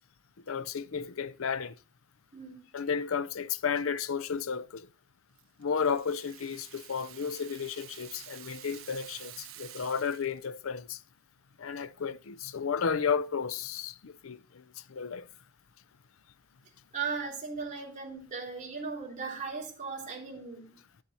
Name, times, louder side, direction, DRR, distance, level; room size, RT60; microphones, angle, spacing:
voice 1, 0.5-1.7 2.7-4.9 5.6-11.0 11.6-15.3, left 6 dB, 80° left, 0.6 m, -33 dB
voice 2, 2.3-2.7 16.9-20.8, right 5 dB, 40° right, 3.0 m, -37 dB
Rattle (instrument), 5.4-10.5, right 11 dB, 85° right, 1.0 m, -50 dB
11.0 x 7.2 x 4.1 m
head